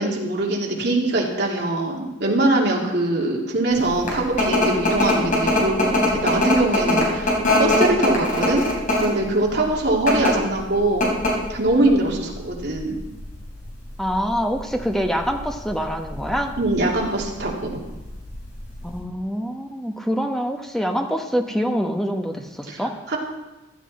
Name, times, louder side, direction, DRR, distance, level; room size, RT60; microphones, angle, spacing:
voice 1, 0.0-8.6 9.0-11.1 11.5-13.0 16.6-17.7 22.7-22.8 23.1-23.2, right 2 dB, 55° right, -2 dB, 2.8 m, -22 dB
sound 1, 3.8-19.0, left 1 dB, 40° left, 3.8 m, -23 dB
voice 2, 14.0-16.6 18.8-22.9, equal, ahead, 4 dB, 1.0 m, -25 dB
15.0 x 12.0 x 4.3 m, 1.0 s
head